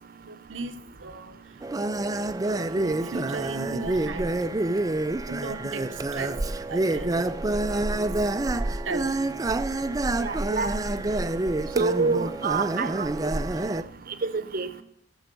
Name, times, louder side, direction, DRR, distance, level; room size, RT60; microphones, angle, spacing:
voice 1, 0.2-1.9 2.4-4.4 5.3-8.2 8.8-9.3 13.5-13.6, right 3 dB, 85° right, 0.9 m, -37 dB
sound 1, 1.6-13.8, right 2 dB, 20° right, 0.4 m, -27 dB
voice 2, 10.2-10.7 11.8-13.1 14.3-14.8, right 4 dB, 50° right, 0.9 m, -27 dB
13.0 x 7.1 x 6.8 m
head